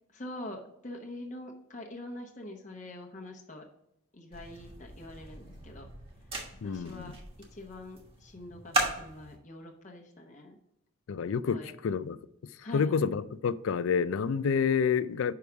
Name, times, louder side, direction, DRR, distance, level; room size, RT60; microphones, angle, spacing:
voice 1, 0.1-3.6 4.1-5.9 6.6-7.2 7.5-10.6 11.5-11.7 12.6-13.1, left 1 dB, 40° left, 0.9 m, -44 dB
sound 1, 4.3-9.4, right 1 dB, 30° right, 1.2 m, -37 dB
voice 2, 6.6-7.1 11.1-12.2 12.7-15.3, left 6 dB, 80° left, 0.4 m, -28 dB
5.4 x 4.8 x 5.7 m
head